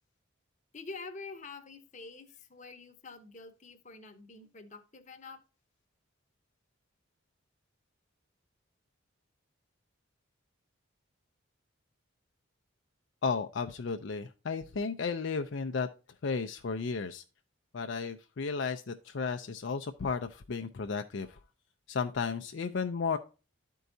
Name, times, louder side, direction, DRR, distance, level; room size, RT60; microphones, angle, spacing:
voice 1, 0.7-5.4, left 3 dB, 35° left, 6 dB, 0.9 m, -47 dB
voice 2, 13.2-15.9 16.2-17.2 17.7-21.4 21.9-23.2, left 5 dB, 60° left, 6 dB, 0.5 m, -33 dB
12.0 x 4.6 x 2.6 m, 0.32 s
head